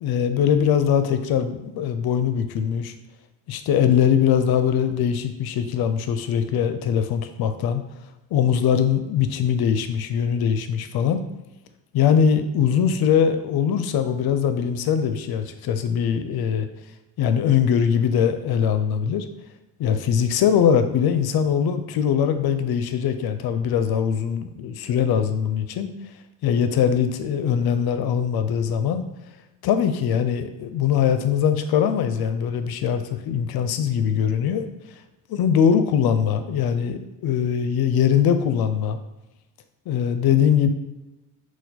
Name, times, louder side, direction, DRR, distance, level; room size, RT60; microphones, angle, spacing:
voice 1, 0.0-2.9 3.5-7.8 8.3-11.2 11.9-16.7 17.2-19.2 19.8-25.9 26.4-29.0 29.6-34.7 35.3-39.0 39.9-40.7, left 8 dB, 60° left, 9 dB, 0.5 m, -21 dB
4.2 x 2.3 x 4.1 m, 1.0 s
supercardioid pair, 65°, 44 cm